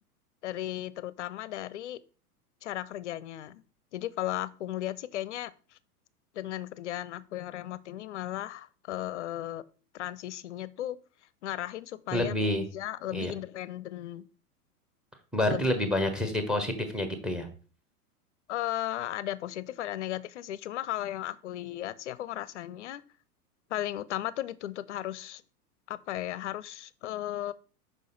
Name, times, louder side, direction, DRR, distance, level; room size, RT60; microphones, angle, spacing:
voice 1, 0.4-2.0 2.6-3.6 3.9-5.5 6.3-9.6 9.9-11.0 11.4-14.2 15.5-15.9 18.5-23.0 23.7-25.4 25.9-27.5, left 13 dB, 50° left, 0.5 m, -35 dB
voice 2, 12.1-12.6 13.1-13.3 15.3-17.5, left 1 dB, ahead, 0.6 m, -28 dB
6.4 x 5.0 x 3.8 m
figure-of-eight pair, 95°, 47 cm